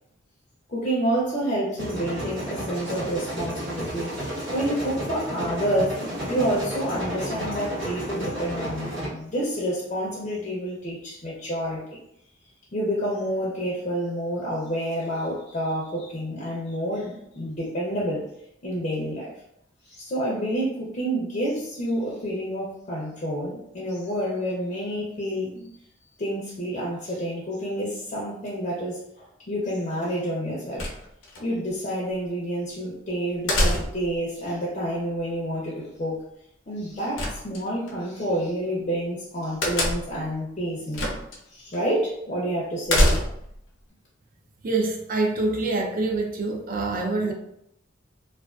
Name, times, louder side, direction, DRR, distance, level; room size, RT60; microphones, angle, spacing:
voice 1, 0.7-6.0 6.3-11.8 12.7-18.2 18.6-19.3 19.9-25.7 26.2-30.9 31.4-36.2 36.7-41.2 41.5-43.1, equal, 40° left, 0.5 m, -29 dB
sound 1, 1.8-9.1, equal, 85° right, 1.1 m, -32 dB
sound 2, 30.8-31.4 33.5-34.2 37.2-37.9 39.6-40.2 40.9-41.4 41.7-41.8 42.9-43.6, left 1 dB, 85° left, 0.6 m, -24 dB
voice 2, 44.6-47.3, right 3 dB, 45° right, 0.4 m, -25 dB
2.3 x 2.3 x 2.3 m
head